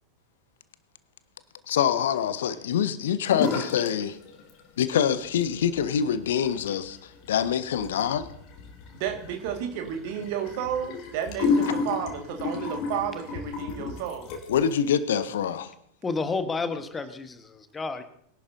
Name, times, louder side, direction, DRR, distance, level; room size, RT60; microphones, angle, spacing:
voice 1, 1.7-4.2 4.8-8.3 14.5-15.7, left 8 dB, 60° left, 0.7 m, -25 dB
sound 1, 3.3-3.9 4.2-4.9 5.2-14.7, left 4 dB, 40° left, 2.1 m, -32 dB
voice 2, 8.9-14.3, right 9 dB, 45° right, 1.8 m, -32 dB
voice 3, 16.0-18.0, left 4 dB, 15° left, 1.1 m, -30 dB
21.5 x 11.0 x 2.7 m
figure-of-eight pair, 90°, 0 cm